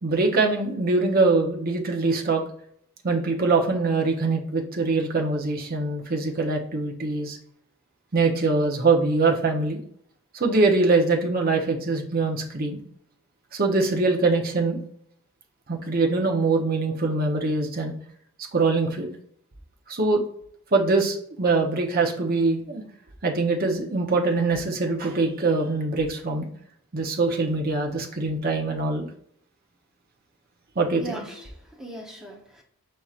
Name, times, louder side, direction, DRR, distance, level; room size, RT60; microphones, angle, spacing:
voice 1, 0.0-2.4 3.0-7.4 8.1-9.8 10.3-12.8 13.5-14.8 15.7-17.9 18.5-19.1 19.9-20.2 20.7-22.8 23.2-26.5 26.9-29.1 30.8-31.2, right 3 dB, 40° right, 1 dB, 0.8 m, -23 dB
voice 2, 30.9-32.6, right 2 dB, ahead, -1 dB, 0.9 m, -39 dB
4.8 x 4.3 x 2.4 m, 0.64 s
head